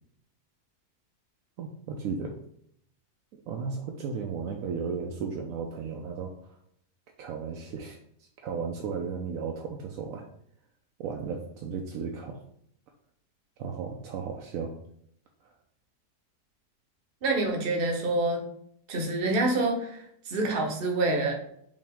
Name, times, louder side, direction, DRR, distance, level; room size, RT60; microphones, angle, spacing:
voice 1, 1.6-2.4 3.3-6.6 7.2-8.0 8.4-10.2 11.0-12.4 13.6-14.8, right 5 dB, 70° right, 1 dB, 0.9 m, -35 dB
voice 2, 17.2-18.4 18.9-21.3, right 2 dB, 45° right, 2 dB, 0.9 m, -27 dB
5.2 x 2.8 x 3.4 m, 0.69 s
omnidirectional pair, 1.8 m